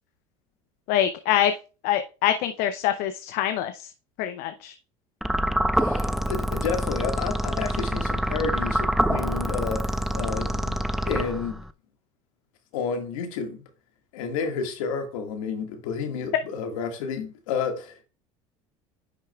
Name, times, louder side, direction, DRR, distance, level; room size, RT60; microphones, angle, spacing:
voice 1, 0.9-1.5 1.8-3.9 4.2-4.7, left 11 dB, 60° left, 0.7 m, -25 dB
sound 1, 5.2-11.7, equal, ahead, 0.4 m, -26 dB
voice 2, 5.8-10.8 11.0-11.6 12.7-13.6 14.1-18.0, left 5 dB, 75° left, 1.8 m, -31 dB
10.0 x 6.4 x 2.3 m
hypercardioid pair, 85°, 17 cm